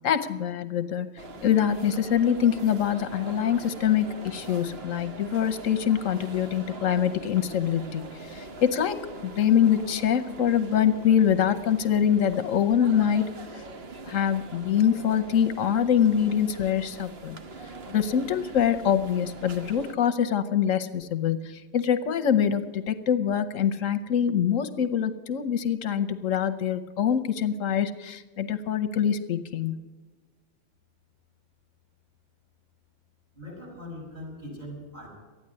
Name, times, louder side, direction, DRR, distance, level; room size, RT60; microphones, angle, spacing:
voice 1, 0.0-13.3 13.5-13.6 14.0-17.4 17.9-29.8, left 9 dB, 85° left, 11 dB, 1.2 m, -24 dB
sound 1, 1.2-19.9, right 3 dB, 55° right, 1.3 m, -43 dB
voice 2, 33.3-35.1, left 1 dB, 30° right, -3 dB, 6.1 m, -40 dB
13.5 x 9.5 x 9.7 m, 1.3 s
omnidirectional pair, 1.3 m